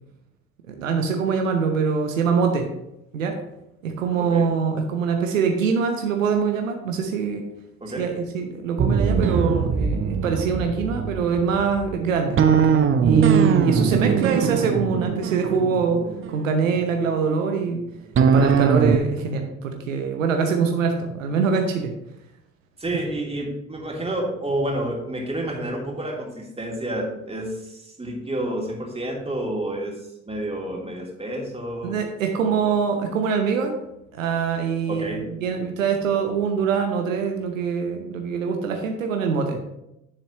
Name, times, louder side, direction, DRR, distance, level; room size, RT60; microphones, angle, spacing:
voice 1, 0.7-2.7 3.1-3.3 3.8-7.4 8.0-12.4 13.0-16.0 16.3-17.8 18.3-21.9 31.8-33.8 34.1-39.8, right 5 dB, 85° right, 4 dB, 0.9 m, -24 dB
sound 1, 8.8-17.0 18.2-19.0, right 6 dB, 35° right, 0.7 m, -21 dB
voice 2, 22.8-30.0 30.3-32.0 32.4-32.7 34.9-35.2, right 1 dB, 15° right, -2 dB, 2.8 m, -29 dB
10.0 x 7.0 x 3.0 m, 0.86 s
hypercardioid pair, 55°, 38 cm